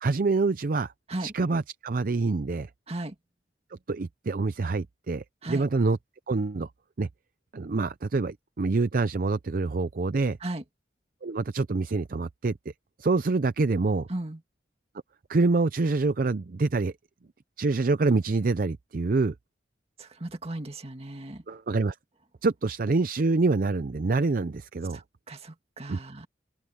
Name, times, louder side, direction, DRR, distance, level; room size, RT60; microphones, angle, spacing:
voice 1, 0.0-0.9 1.2-2.7 3.9-6.0 6.3-6.7 7.0-7.1 7.5-10.4 11.2-12.6 13.0-14.1 15.3-16.9 17.6-19.3 21.5-22.0 22.4-25.0 25.9-26.0, right 3 dB, 55° right, 0.5 m, -26 dB
voice 2, 20.0-21.4 24.9-26.3, right 1 dB, 35° right, 2.0 m, -36 dB
open air
head